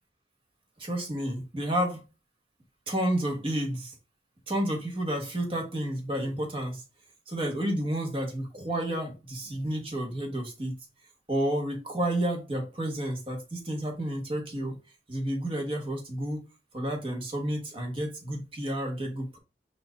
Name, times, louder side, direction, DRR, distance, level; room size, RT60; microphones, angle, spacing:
voice 1, 0.8-2.0 2.9-3.9 4.5-6.8 7.3-10.7 11.3-14.7 15.1-16.4 16.7-19.4, right 1 dB, 30° right, 1.2 m, -30 dB
4.3 x 2.6 x 4.5 m
head